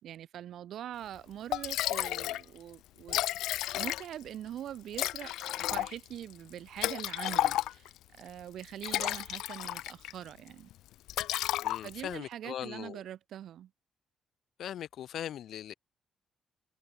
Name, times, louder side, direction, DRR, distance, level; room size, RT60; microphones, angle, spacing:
voice 1, 0.0-3.2 3.7-7.9 8.2-10.7 11.8-13.7, right 11 dB, 70° right, 3.9 m, -43 dB
Liquid, 1.2-1.3 1.5-2.4 2.7-2.8 3.0-4.3 4.9-8.0 8.6-10.2 10.5-10.7 11.1-12.1, left 14 dB, 85° left, 3.1 m, -32 dB
voice 2, 11.6-13.0 14.6-15.7, left 10 dB, 70° left, 1.6 m, -40 dB
cardioid pair, 90°, 0 cm